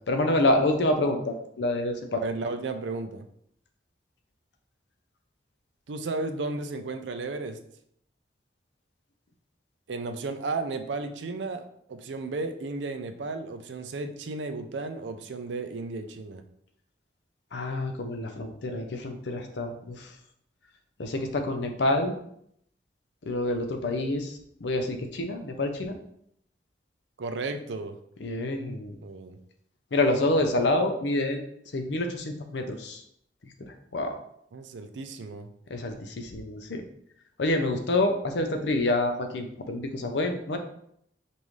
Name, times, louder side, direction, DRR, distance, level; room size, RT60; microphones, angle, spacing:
voice 1, 0.1-2.2 17.5-20.1 21.0-22.1 23.3-26.0 28.2-29.0 29.9-31.4 31.7-33.0 33.6-34.2 35.7-36.8 37.4-40.6, left 2 dB, 75° left, 5 dB, 0.6 m, -27 dB
voice 2, 2.2-3.3 5.9-7.6 9.9-16.4 27.2-28.0 29.0-29.4 34.5-35.5, right 3 dB, 85° right, 8 dB, 0.5 m, -34 dB
5.3 x 2.6 x 3.1 m, 0.71 s
head